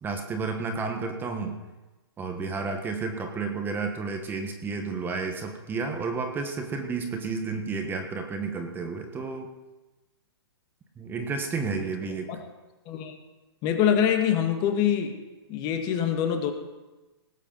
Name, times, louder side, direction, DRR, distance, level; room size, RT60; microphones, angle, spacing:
voice 1, 0.0-1.6 2.2-9.5 11.0-12.3, right 4 dB, 15° right, 4 dB, 1.4 m, -31 dB
voice 2, 13.6-15.2 15.5-16.5, left 9 dB, 30° left, 6 dB, 1.6 m, -24 dB
19.0 x 8.2 x 5.6 m, 1.1 s
hypercardioid pair, 140°, 14 cm